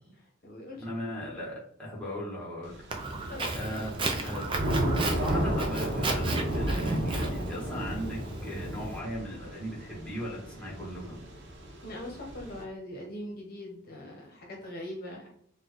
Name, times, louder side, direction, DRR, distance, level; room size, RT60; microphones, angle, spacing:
voice 1, 0.2-0.9 3.2-3.9 11.8-15.3, left 1 dB, 50° left, 0 dB, 0.8 m, -42 dB
voice 2, 0.8-2.8 3.5-3.9 4.2-4.5 4.9-11.2, equal, 5° left, -5 dB, 1.1 m, -38 dB
Thunder / Rain, 2.7-12.6, right 1 dB, 60° right, 0.8 m, -33 dB
Walk footsteps, 2.9-9.0, right 3 dB, 25° right, 0.4 m, -35 dB
4.3 x 2.2 x 3.0 m, 0.65 s
head